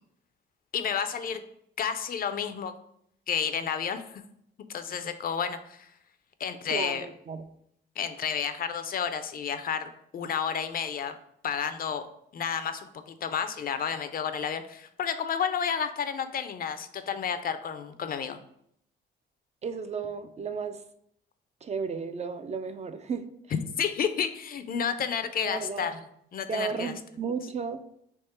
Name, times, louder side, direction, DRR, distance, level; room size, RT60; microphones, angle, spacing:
voice 1, 0.7-1.4 1.8-2.7 3.3-4.2 4.6-5.9 6.4-7.1 8.0-11.1 11.4-12.1 12.3-18.4 23.5-26.0 26.3-26.9, left 7 dB, 45° left, 10 dB, 0.4 m, -31 dB
voice 2, 6.7-7.4 19.6-20.8 21.6-23.2 25.4-25.9 26.5-27.8, right 5 dB, 35° right, 8 dB, 0.4 m, -33 dB
3.5 x 3.0 x 4.2 m, 0.71 s
cardioid pair, 90°, 20 cm